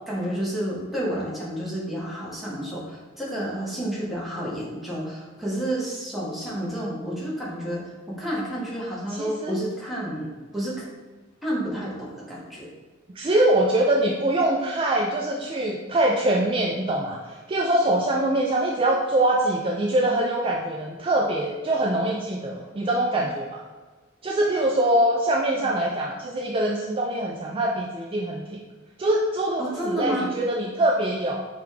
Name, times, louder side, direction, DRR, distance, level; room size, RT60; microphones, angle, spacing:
voice 1, 0.1-10.8 11.4-12.7 25.6-25.7 29.6-30.3, right 1 dB, ahead, -7 dB, 1.0 m, -30 dB
voice 2, 9.1-9.6 13.2-17.2 17.5-23.6 24.2-28.6 29.0-31.4, right 1 dB, 25° right, -2 dB, 0.3 m, -23 dB
5.0 x 2.3 x 3.2 m, 1.3 s
head